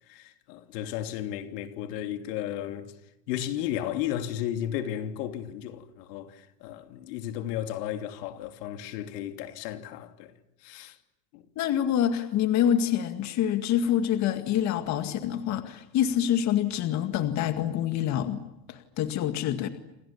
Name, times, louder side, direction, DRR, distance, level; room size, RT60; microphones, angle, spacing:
voice 1, 0.1-2.9 3.3-10.3 10.6-11.0 11.3-11.4, left 11 dB, 80° left, 3.1 m, -34 dB
voice 2, 11.6-18.4 18.7-19.7, left 10 dB, 35° left, 2.1 m, -26 dB
29.0 x 27.0 x 7.2 m
cardioid pair, 180°, 48 cm